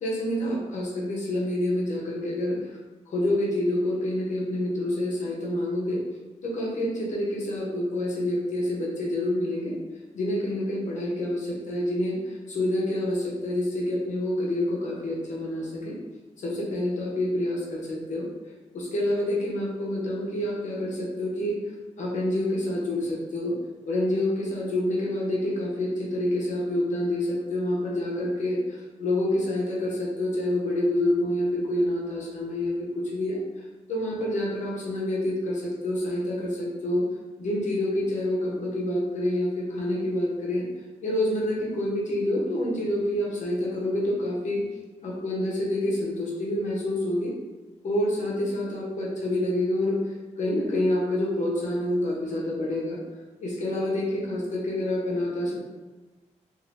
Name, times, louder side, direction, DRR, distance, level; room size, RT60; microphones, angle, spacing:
voice 1, 0.0-2.8 3.1-6.0 6.4-9.7 10.1-16.0 16.4-18.3 18.7-21.6 22.0-23.5 23.8-37.1 37.4-40.6 41.0-44.6 45.0-47.3 47.8-50.0 50.4-53.0 53.4-55.6, left 1 dB, 80° left, -3 dB, 0.8 m, -27 dB
3.2 x 2.6 x 2.6 m, 1.2 s
wide cardioid pair, 160°, 13 cm